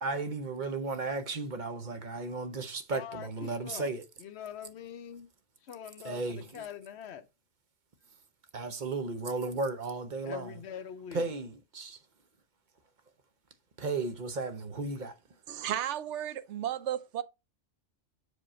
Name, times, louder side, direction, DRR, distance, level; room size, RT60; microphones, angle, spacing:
voice 1, 0.0-4.0 6.0-6.6 8.5-10.6 11.1-12.0 13.8-15.1, right 3 dB, 45° right, 0.8 m, -34 dB
voice 2, 2.9-3.9 4.2-5.3 5.7-6.2 6.5-7.2 10.3-11.2, left 8 dB, 65° left, 0.9 m, -43 dB
voice 3, 15.5-17.2, right 11 dB, 75° right, 0.9 m, -34 dB
6.1 x 5.0 x 4.2 m
omnidirectional pair, 1.2 m